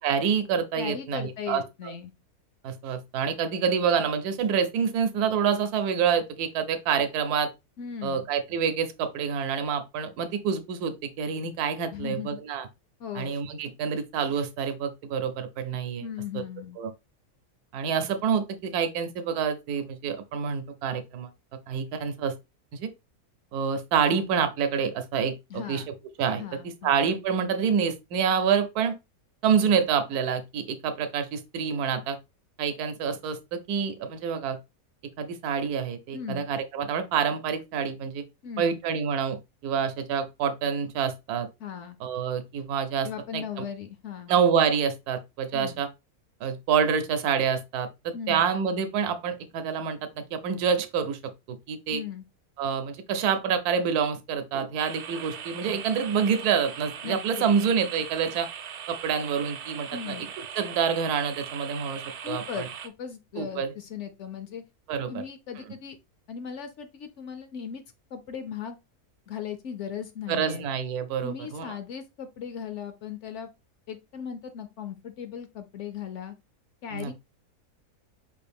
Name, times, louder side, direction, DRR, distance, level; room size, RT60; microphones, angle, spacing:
voice 1, 0.0-1.6 2.6-7.5 8.0-12.7 13.1-16.1 16.8-16.9 17.7-21.3 21.7-22.3 22.7-22.9 23.5-25.8 26.2-26.4 26.8-29.0 29.4-32.2 32.6-34.6 35.2-38.2 38.6-41.5 42.0-43.1 43.3-43.4 44.3-45.9 46.4-51.2 51.5-52.0 52.6-58.5 58.9-62.7 63.4-63.7 64.9-65.2 70.3-71.7 76.9-77.1, right 7 dB, 85° right, 1.1 m, -27 dB
voice 2, 0.8-2.1 7.8-8.3 11.9-12.4 13.0-13.4 16.0-16.8 25.5-25.9 26.4-26.9 36.1-36.5 38.4-38.8 41.6-42.0 43.0-44.3 45.5-45.8 48.1-48.4 51.9-52.3 57.0-57.5 57.8-57.9 59.9-60.3 62.2-64.6 65.1-66.0 66.3-67.8 68.1-68.8 69.3-70.7 71.2-73.5 73.9-76.4 76.8-77.1, left 8 dB, 65° left, 0.8 m, -37 dB
sound 1, 54.8-62.9, right 8 dB, 65° right, 0.7 m, -40 dB
5.2 x 2.6 x 3.3 m
omnidirectional pair, 1.6 m